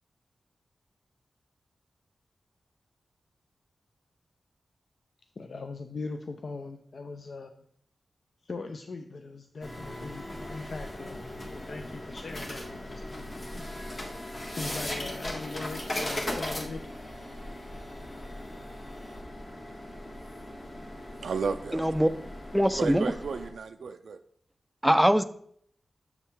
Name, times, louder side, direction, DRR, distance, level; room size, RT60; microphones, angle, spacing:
voice 1, 5.4-7.5 8.5-13.3 14.6-16.8, left 3 dB, 55° left, 0.5 m, -40 dB
sound 1, 9.6-23.5, left 1 dB, 35° left, 1.5 m, -38 dB
voice 2, 21.2-21.9 22.8-24.2, right 5 dB, 90° right, 0.3 m, -33 dB
voice 3, 21.7-22.1 22.5-23.1 24.8-25.2, equal, 5° right, 0.4 m, -22 dB
7.1 x 6.9 x 3.6 m
wide cardioid pair, 135°, 0 cm